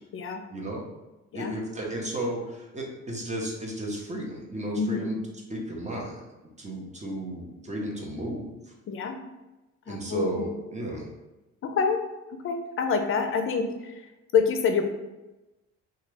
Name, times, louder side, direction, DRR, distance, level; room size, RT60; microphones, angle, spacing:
voice 1, 0.5-0.8 1.3-5.2 5.5-6.2 6.6-8.6 9.9-11.1, right 1 dB, 25° right, -1 dB, 0.7 m, -33 dB
voice 2, 4.7-5.1 8.9-9.2 9.9-10.5 11.6-12.0 12.4-14.0 14.3-14.9, left 5 dB, 45° left, 5 dB, 0.5 m, -26 dB
2.8 x 2.3 x 3.2 m, 1.1 s
cardioid pair, 90°, 30 cm